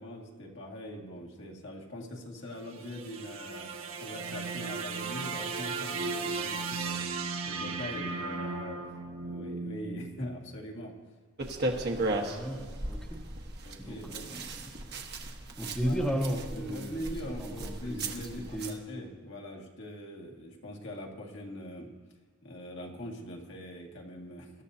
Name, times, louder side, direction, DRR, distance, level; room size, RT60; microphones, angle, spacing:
voice 1, 0.0-8.8 9.2-11.0 13.6-14.3 15.8-16.1 16.6-21.9 22.4-24.6, left 1 dB, 60° left, -1 dB, 2.1 m, -42 dB
sound 1, 2.5-10.8, right 4 dB, 85° right, 1.5 m, -36 dB
sound 2, 11.4-18.8, right 2 dB, 50° right, 1.3 m, -36 dB
voice 2, 12.1-13.2 13.8-14.8 15.6-18.8, equal, 5° left, -1 dB, 1.1 m, -35 dB
24.0 x 12.5 x 2.8 m, 1.4 s
head